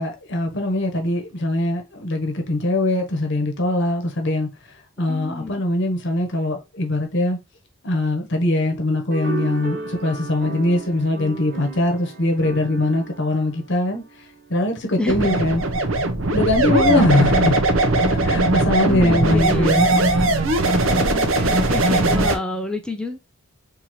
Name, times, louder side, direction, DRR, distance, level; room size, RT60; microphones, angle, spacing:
voice 1, 0.0-7.4 7.8-14.0 14.5-15.6 16.2-17.6 18.1-19.9, left 1 dB, 55° left, 0.9 m, -22 dB
voice 2, 5.1-5.6 15.0-15.2 18.9-20.0 20.8-23.2, left 1 dB, 5° left, 0.4 m, -28 dB
sound 1, 9.1-14.7, right 4 dB, 45° right, 1.5 m, -34 dB
sound 2, 15.1-22.4, right 2 dB, 65° right, 0.7 m, -19 dB
4.1 x 2.7 x 3.0 m
head